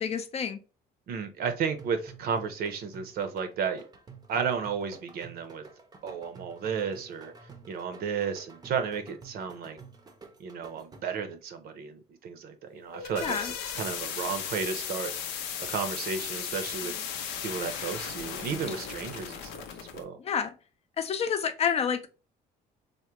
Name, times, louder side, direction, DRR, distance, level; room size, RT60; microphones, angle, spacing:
voice 1, 0.0-0.6 13.2-13.5 20.2-20.5 21.0-22.0, left 7 dB, 40° left, 0.4 m, -28 dB
voice 2, 1.1-3.8 4.3-5.6 6.0-7.3 7.7-9.8 10.4-15.1 15.6-16.9 17.4-19.5 19.9-20.2, right 6 dB, 65° right, 0.6 m, -33 dB
sound 1, 1.8-11.3, right 5 dB, 25° right, 0.5 m, -50 dB
sound 2, 12.7-20.0, left 8 dB, 90° left, 0.5 m, -36 dB
3.5 x 2.1 x 2.9 m
cardioid pair, 110°, 17 cm